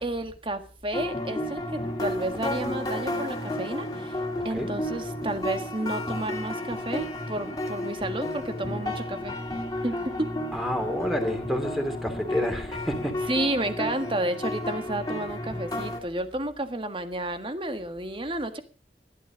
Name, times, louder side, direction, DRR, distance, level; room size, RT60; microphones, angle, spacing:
voice 1, 0.0-9.3 9.8-10.3 13.3-18.6, right 1 dB, 30° right, 1.6 m, -31 dB
sound 1, 0.9-16.0, left 1 dB, 20° left, 2.6 m, -32 dB
voice 2, 10.5-13.3, equal, ahead, 3.0 m, -29 dB
15.0 x 12.0 x 5.1 m
head